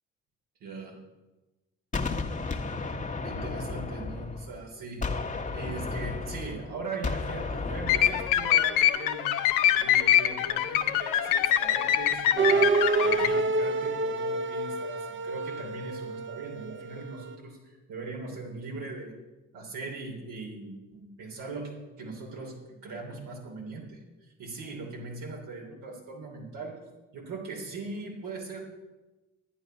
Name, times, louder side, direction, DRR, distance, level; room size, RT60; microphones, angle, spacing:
voice 1, 0.6-1.0 3.2-5.0 5.5-9.3 9.8-19.1 19.5-21.7 22.0-22.5 22.8-26.8 27.1-28.6, right 3 dB, 75° right, 0 dB, 3.2 m, -40 dB
Gunshot gunfire, 1.9-4.6 5.0-8.6, left 3 dB, 25° left, 1.4 m, -33 dB
sound 1, 7.9-13.4, left 11 dB, 85° left, 0.7 m, -24 dB
sound 2, 12.4-17.3, right 3 dB, 40° right, 0.8 m, -28 dB
11.0 x 10.0 x 5.5 m, 1.1 s
hypercardioid pair, 45°, 32 cm